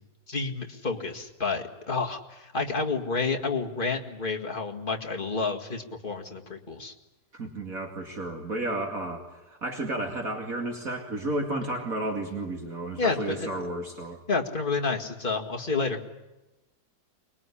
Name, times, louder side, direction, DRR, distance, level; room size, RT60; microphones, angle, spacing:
voice 1, 0.3-6.9 13.0-13.5 14.3-16.0, left 4 dB, 30° left, 2 dB, 2.1 m, -30 dB
voice 2, 7.3-14.2, right 2 dB, 55° right, 2 dB, 2.8 m, -32 dB
24.5 x 21.0 x 10.0 m, 1.0 s
omnidirectional pair, 1.8 m